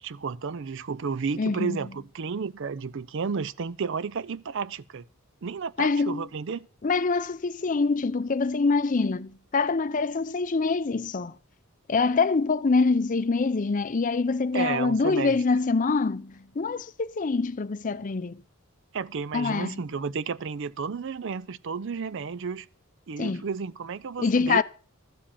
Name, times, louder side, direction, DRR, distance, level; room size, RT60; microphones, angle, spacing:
voice 1, 0.0-5.0 5.4-6.7 14.5-15.4 18.9-22.7 23.1-24.6, right 5 dB, 55° right, 0.5 m, -32 dB
voice 2, 1.4-1.8 5.8-6.3 6.8-11.3 11.9-18.4 19.3-19.8 23.2-23.4 24.2-24.6, left 4 dB, 35° left, 0.5 m, -25 dB
13.0 x 5.0 x 8.6 m
head